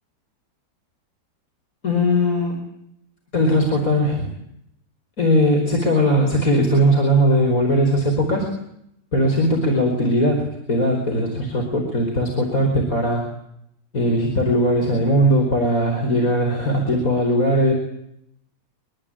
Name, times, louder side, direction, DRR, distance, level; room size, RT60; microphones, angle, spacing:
voice 1, 1.8-2.6 3.3-4.3 5.2-8.5 9.1-13.3 13.9-17.7, equal, 45° left, 2 dB, 5.2 m, -19 dB
25.0 x 24.0 x 8.9 m, 0.76 s
omnidirectional pair, 2.0 m